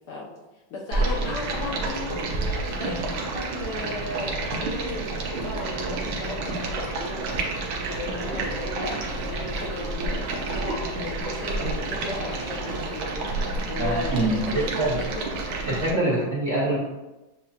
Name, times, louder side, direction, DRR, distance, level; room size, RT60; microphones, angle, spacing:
voice 1, 0.7-15.3 16.0-16.2, left 3 dB, 70° left, -3 dB, 1.1 m, -36 dB
Stream, 0.9-15.9, right 3 dB, 75° right, 1.5 m, -29 dB
voice 2, 13.8-15.0 15.7-16.8, right 1 dB, 55° right, -6 dB, 0.9 m, -25 dB
7.4 x 2.7 x 2.4 m, 1.0 s
omnidirectional pair, 2.2 m